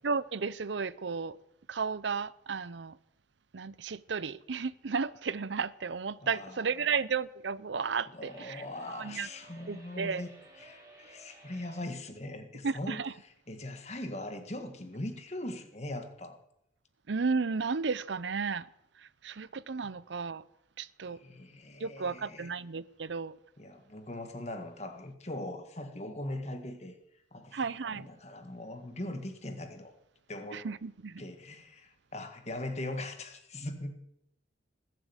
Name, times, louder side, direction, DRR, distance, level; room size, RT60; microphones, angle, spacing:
voice 1, 0.0-1.4 1.7-3.0 3.5-9.3 9.7-10.2 12.6-13.1 17.1-18.7 19.0-20.4 20.8-21.2 21.8-23.3 27.5-28.1 30.5-31.2, right 5 dB, 80° right, 0.6 m, -33 dB
voice 2, 6.2-6.7 8.1-10.3 10.6-13.0 13.5-16.4 21.0-22.5 23.6-27.0 27.3-29.9 30.3-30.6 31.2-33.9, left 1 dB, 35° left, 1.8 m, -40 dB
sound 1, 8.3-11.9, right 2 dB, 20° right, 5.6 m, -55 dB
20.5 x 7.7 x 8.1 m
head